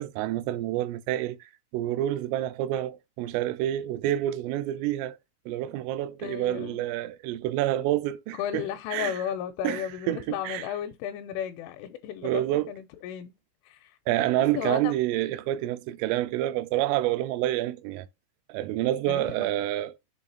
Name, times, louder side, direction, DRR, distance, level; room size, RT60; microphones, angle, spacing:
voice 1, 0.0-5.2 5.5-8.6 8.9-9.2 9.6-10.7 12.2-12.7 14.1-18.1 18.5-19.9, right 14 dB, 90° right, 3.2 m, -28 dB
voice 2, 6.2-6.8 8.4-13.3 13.6-14.9 19.1-19.5, left 10 dB, 85° left, 3.1 m, -34 dB
7.5 x 3.2 x 4.0 m
omnidirectional pair, 5.7 m